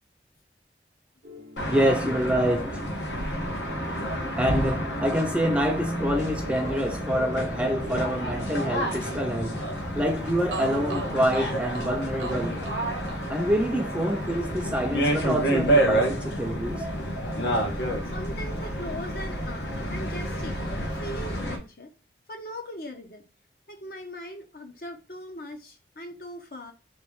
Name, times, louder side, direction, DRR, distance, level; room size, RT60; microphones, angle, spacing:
sound 1, 1.2-10.0, left 1 dB, 45° right, 0.6 m, -44 dB
sound 2, 1.6-21.6, right 1 dB, 75° left, 1.3 m, -29 dB
voice 1, 1.7-2.8 4.4-9.6 9.9-12.7 13.3-16.9, equal, 5° right, 0.5 m, -26 dB
sound 3, 10.1-10.2 10.5-18.4 18.6-19.8, right 3 dB, 85° right, 0.8 m, -43 dB
voice 2, 18.0-21.9 22.3-23.2 23.7-26.7, equal, 55° left, 0.9 m, -40 dB
3.5 x 3.1 x 4.7 m
head